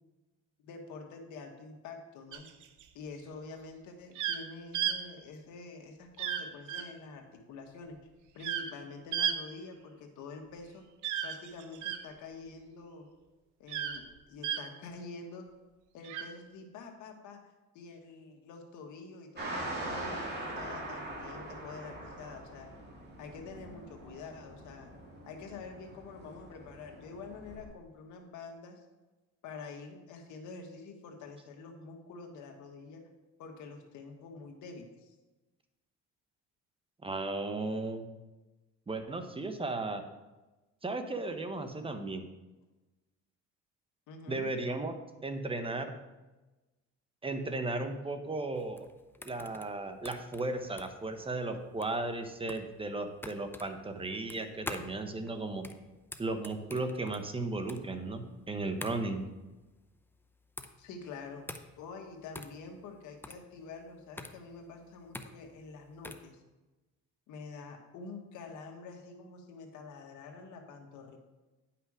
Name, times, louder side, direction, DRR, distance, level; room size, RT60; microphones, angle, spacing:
voice 1, 0.6-2.5 2.9-8.0 8.3-10.8 11.2-13.1 13.6-15.5 15.9-17.4 17.7-22.7 23.2-24.9 25.3-28.8 29.4-33.0 33.4-35.2 44.1-44.4 60.8-61.5 61.8-66.4 67.3-71.2, left 4 dB, 80° left, 3 dB, 1.6 m, -47 dB
sound 1, 2.3-2.8 4.2-4.4 4.7-5.0 6.2-6.4 6.7-6.8 8.4-8.7 9.1-9.4 11.0-12.0 13.7-14.0 14.4-14.6 16.0-16.2, right 9 dB, 80° right, 0.8 m, -33 dB
sound 2, 19.4-27.6, right 1 dB, 35° right, 2.7 m, -42 dB
voice 2, 37.0-38.0 38.9-40.0 40.8-42.2 44.3-44.9 45.2-45.9 47.2-48.9 49.2-55.6 56.2-59.2, right 2 dB, 20° right, 7 dB, 1.0 m, -35 dB
sound 3, 48.5-66.3, left 2 dB, 5° left, 0.6 m, -47 dB
9.6 x 5.8 x 4.9 m, 1.1 s
cardioid pair, 100°, 30 cm